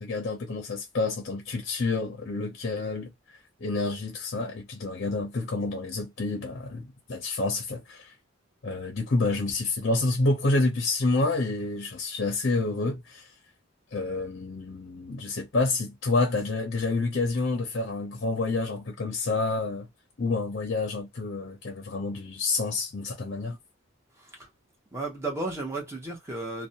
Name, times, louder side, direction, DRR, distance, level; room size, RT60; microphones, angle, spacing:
voice 1, 0.0-3.1 3.6-8.1 8.6-13.3 13.9-19.9 20.2-23.6, left 3 dB, 50° left, 0.6 m, -28 dB
voice 2, 24.9-26.7, right 2 dB, 15° right, 0.8 m, -34 dB
2.5 x 2.2 x 2.7 m
head